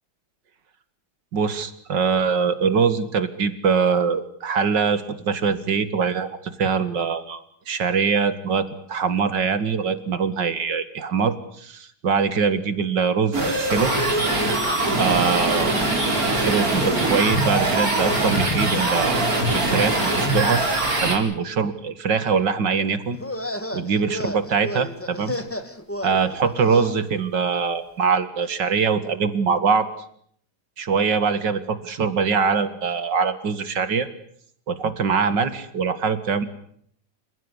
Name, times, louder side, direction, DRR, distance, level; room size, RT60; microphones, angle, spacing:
voice 1, 1.3-6.3 6.6-13.9 15.0-15.8 16.3-20.6 21.0-23.2 23.7-25.4 26.0-29.9 30.8-34.1 34.7-36.5, right 5 dB, 85° right, 12 dB, 2.6 m, -23 dB
sound 1, 13.3-21.2, right 2 dB, 55° right, 4.9 m, -22 dB
sound 2, 23.1-27.0, left 1 dB, 10° left, 1.4 m, -32 dB
28.5 x 16.0 x 9.9 m, 0.66 s
omnidirectional pair, 1.9 m